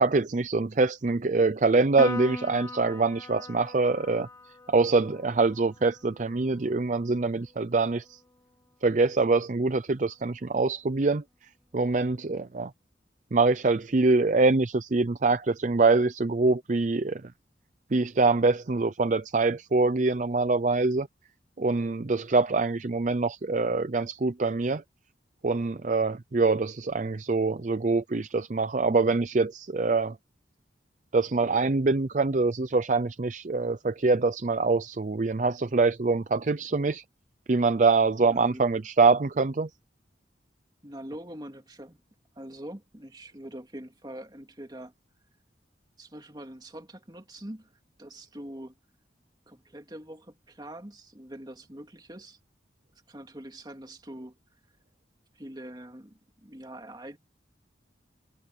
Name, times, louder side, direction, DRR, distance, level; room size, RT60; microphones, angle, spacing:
voice 1, 0.0-4.3 4.7-8.2 8.8-12.7 13.3-17.3 17.9-21.1 21.6-24.8 25.4-30.2 31.1-37.0 37.5-39.7, right 3 dB, 45° right, 0.5 m, -24 dB
Piano, 2.0-8.7, left 2 dB, 15° left, 1.1 m, -41 dB
voice 2, 38.2-38.6 40.8-42.0 42.4-44.9 46.0-47.7 48.0-48.8 49.5-52.4 53.1-54.4 55.3-57.2, right 1 dB, 25° right, 2.3 m, -43 dB
head